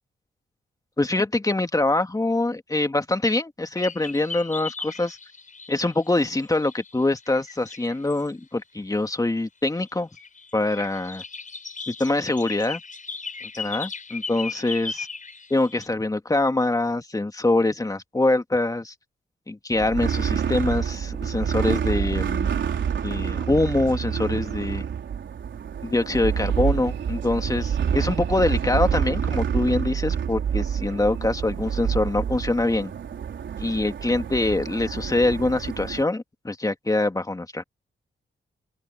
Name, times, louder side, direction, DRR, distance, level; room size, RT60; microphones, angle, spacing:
voice 1, 1.0-5.2 5.7-10.1 10.5-11.2 11.9-12.8 13.6-15.1 15.5-18.9 19.5-24.8 25.8-32.9 33.6-37.6, left 2 dB, 20° left, 2.0 m, -24 dB
sound 1, 3.7-8.3 9.6-9.9 10.1-15.9, left 4 dB, 45° left, 7.9 m, -37 dB
sound 2, 19.7-36.0, right 8 dB, 80° right, 4.3 m, -27 dB
open air
cardioid pair, 85°, 19 cm